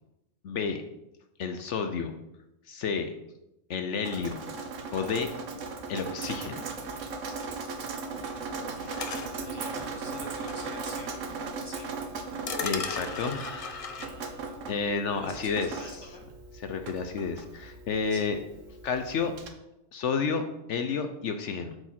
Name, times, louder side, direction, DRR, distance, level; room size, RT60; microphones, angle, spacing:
voice 1, 0.4-0.8 1.4-2.1 2.7-3.1 3.7-4.4 4.9-5.3 5.9-6.7 8.8-8.9 12.6-13.8 14.7-16.1 16.5-18.4 18.8-19.3 19.9-20.4 20.7-21.7, left 5 dB, 65° left, 7 dB, 0.9 m, -31 dB
Drip, 4.0-19.5, right 4 dB, 70° right, 1.2 m, -38 dB
sound 1, 8.9-9.3 10.5-10.6 11.1-11.2 12.5-14.1, left 4 dB, 45° left, 0.5 m, -35 dB
voice 2, 9.0-12.0 12.3-14.6 15.1-16.2 18.1-18.3, equal, 20° right, -1 dB, 1.4 m, -47 dB
7.8 x 5.1 x 5.8 m, 0.89 s
omnidirectional pair, 1.4 m